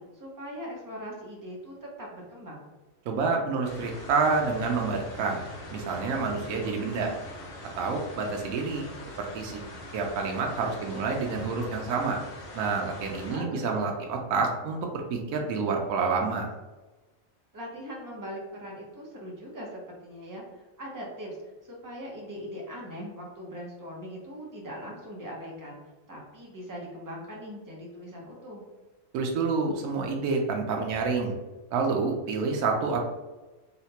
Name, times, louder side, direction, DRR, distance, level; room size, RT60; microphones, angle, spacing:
voice 1, 0.0-2.6 13.0-13.9 17.5-21.4 21.6-25.8 26.1-28.6, equal, 25° right, -3 dB, 0.5 m, -41 dB
voice 2, 3.1-5.4 5.7-7.1 7.8-8.9 9.2-9.6 9.9-12.2 12.5-16.5 29.1-31.3 31.7-33.0, right 4 dB, 85° right, 1 dB, 1.0 m, -28 dB
sound 1, 3.6-13.4, left 1 dB, 65° left, 1.0 m, -43 dB
4.0 x 2.1 x 2.8 m, 1.1 s
omnidirectional pair, 1.4 m